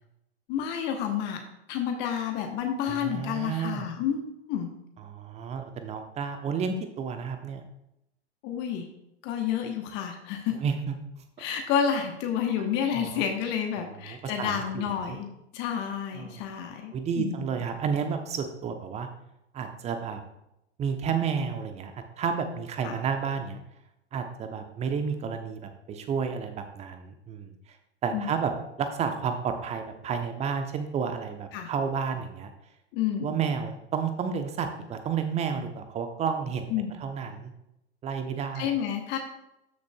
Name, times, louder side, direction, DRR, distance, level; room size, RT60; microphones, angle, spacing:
voice 1, 0.5-1.4 1.7-4.2 4.5-4.7 8.4-8.9 9.2-10.6 11.4-17.7 22.8-23.0 28.1-28.3 31.5-31.7 32.9-33.4 36.7-37.0 38.5-39.2, left 8 dB, 30° left, 4 dB, 1.0 m, -30 dB
voice 2, 2.9-3.9 5.0-7.6 10.6-10.9 12.9-13.2 14.1-14.8 16.2-16.4 16.9-19.1 19.5-20.2 20.8-23.6 24.1-27.5 28.0-28.5 28.8-32.5 33.2-36.7 37.0-37.5 38.0-38.7, right 6 dB, 20° right, 7 dB, 0.9 m, -31 dB
13.0 x 6.5 x 2.3 m, 0.84 s
figure-of-eight pair, 95°, 34 cm